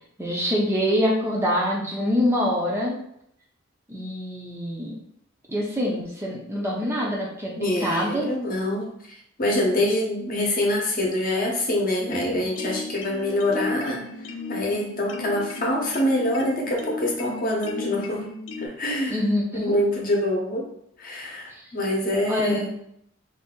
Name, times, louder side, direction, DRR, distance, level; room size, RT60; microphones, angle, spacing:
voice 1, 0.2-3.0 3.9-5.0 5.5-7.5 7.8-8.3 19.1-19.7 22.3-22.6, equal, 10° right, -2 dB, 0.5 m, -25 dB
voice 2, 7.6-9.1 9.4-14.0 14.5-18.2 18.6-19.3 19.5-20.7 21.0-22.7, left 1 dB, 45° left, -1 dB, 0.8 m, -25 dB
sound 1, 12.0-18.7, left 3 dB, 75° left, 0.4 m, -35 dB
2.6 x 2.6 x 3.7 m, 0.72 s
head